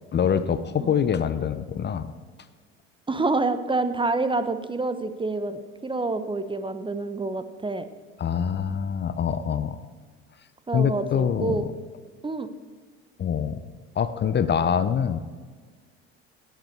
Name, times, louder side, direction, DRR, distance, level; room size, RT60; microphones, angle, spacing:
voice 1, 0.1-2.1 8.2-9.8 10.7-11.6 13.2-13.6 14.0-15.2, left 7 dB, 35° left, 13 dB, 0.7 m, -24 dB
voice 2, 3.1-7.9 10.7-11.6 12.2-12.5, right 3 dB, 15° right, 11 dB, 0.9 m, -27 dB
17.0 x 8.2 x 4.6 m, 1.5 s
hypercardioid pair, 75°, 32 cm